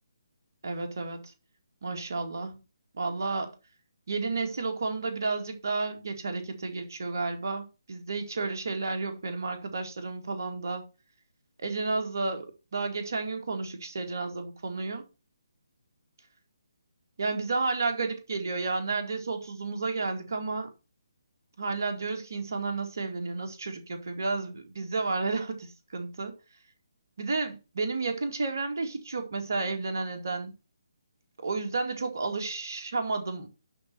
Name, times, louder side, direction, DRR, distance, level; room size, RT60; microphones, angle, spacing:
voice 1, 0.6-1.3 1.8-2.6 2.9-3.6 4.1-10.8 11.6-15.1 17.2-20.7 21.6-26.3 27.2-30.5 31.4-33.5, right 3 dB, 50° right, 2.1 m, -32 dB
11.0 x 4.2 x 6.4 m
figure-of-eight pair, 140°, 2 cm